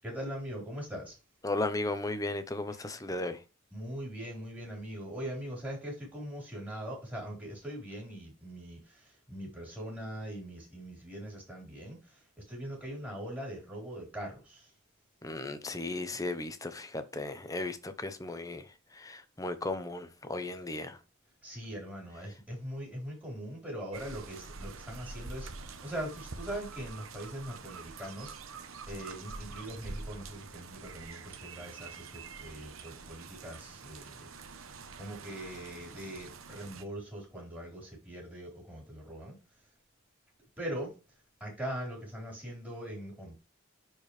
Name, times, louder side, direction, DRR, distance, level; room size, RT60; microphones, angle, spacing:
voice 1, 0.0-1.2 2.7-2.9 3.7-14.7 21.4-28.6 28.9-34.3 35.0-39.4 40.6-40.9 41.4-43.4, equal, 10° right, 4.4 m, -41 dB
voice 2, 1.4-3.4 15.2-21.0, left 2 dB, 15° left, 0.8 m, -35 dB
sound 1, 23.9-36.8, right 4 dB, 85° right, 0.9 m, -46 dB
10.5 x 4.6 x 3.3 m
head